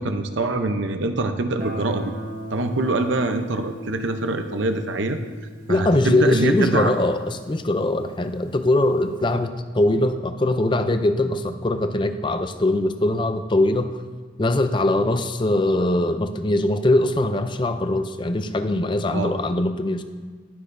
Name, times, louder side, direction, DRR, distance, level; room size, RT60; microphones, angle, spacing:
voice 1, 0.0-2.1 2.5-5.2 5.7-6.9 19.1-19.3, right 2 dB, 80° right, 7 dB, 0.8 m, -24 dB
Guitar, 1.6-8.3, equal, 45° right, 1.0 m, -38 dB
voice 2, 5.7-14.0 14.4-20.0, left 1 dB, 25° left, 9 dB, 0.5 m, -21 dB
19.5 x 6.6 x 2.6 m, 1.5 s
head